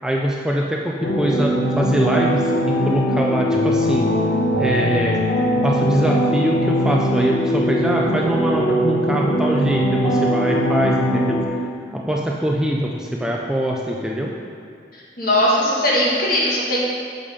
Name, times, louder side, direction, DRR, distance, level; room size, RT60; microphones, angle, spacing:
voice 1, 0.0-4.1 4.6-5.2 5.6-11.4 11.9-14.3, equal, 5° right, -2 dB, 0.4 m, -23 dB
sound 1, 1.0-11.4, equal, 75° left, 1.1 m, -20 dB
voice 2, 14.9-16.8, left 1 dB, 55° left, -6 dB, 1.8 m, -19 dB
6.7 x 5.3 x 5.1 m, 2.3 s
head